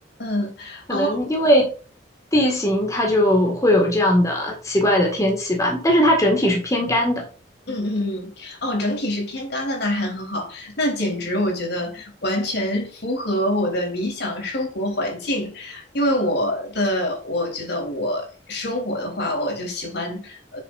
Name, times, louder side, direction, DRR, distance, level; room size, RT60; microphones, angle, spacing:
voice 1, 0.2-1.2 7.7-20.6, left 1 dB, 60° left, 3.7 m, -26 dB
voice 2, 0.9-1.7 2.3-7.2, equal, 15° left, 2.0 m, -19 dB
9.2 x 6.9 x 2.6 m
head